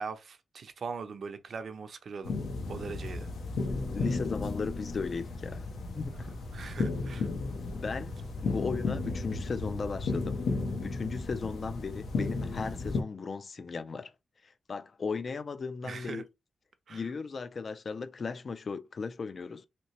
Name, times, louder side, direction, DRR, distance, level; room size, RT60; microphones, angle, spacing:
voice 1, 0.0-2.3 2.7-3.3 6.5-7.3 15.8-16.2 16.9-17.0, right 5 dB, 60° right, 0.5 m, -40 dB
sound 1, 2.2-13.0, left 3 dB, 85° left, 0.7 m, -34 dB
voice 2, 3.7-5.7 6.0-6.4 7.7-10.4 10.8-14.1 14.4-16.3 16.9-19.7, left 4 dB, 45° left, 0.3 m, -36 dB
3.0 x 2.9 x 2.9 m
cardioid pair, 100°, 0 cm